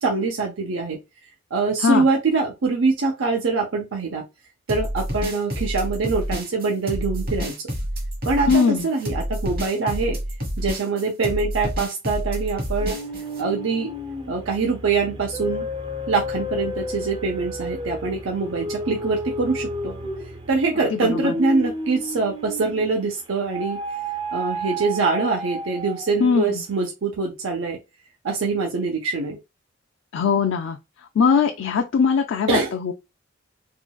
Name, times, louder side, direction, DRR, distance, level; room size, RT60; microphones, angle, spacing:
voice 1, 0.0-1.0 1.5-4.2 4.7-7.6 8.3-10.2 10.6-13.0 13.4-13.9 14.3-15.7 16.1-20.0 20.5-23.8 24.3-27.8 28.2-29.4 32.5-32.7, right 4 dB, 85° right, 0.7 m, -24 dB
sound 1, 4.7-13.4, equal, 50° right, 1.2 m, -29 dB
voice 2, 8.5-8.9 20.9-21.3 26.2-26.6 30.1-30.8 31.2-32.9, left 5 dB, 75° left, 0.4 m, -20 dB
sound 2, 12.8-23.0 23.5-26.3, equal, 25° right, 0.5 m, -31 dB
3.7 x 2.3 x 2.3 m
head